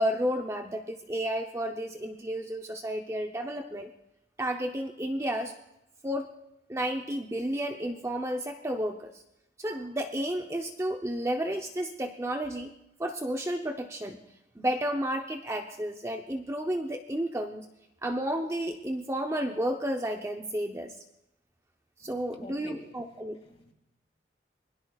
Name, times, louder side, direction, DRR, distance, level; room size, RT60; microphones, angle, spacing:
voice 1, 0.0-3.9 4.4-5.6 6.0-6.3 6.7-9.1 9.6-12.7 13.0-14.2 14.6-17.7 18.0-21.0 22.0-23.4, equal, 15° right, 4 dB, 0.7 m, -32 dB
voice 2, 22.0-23.7, left 1 dB, 30° left, 2 dB, 2.4 m, -48 dB
27.0 x 21.0 x 2.4 m, 0.86 s
head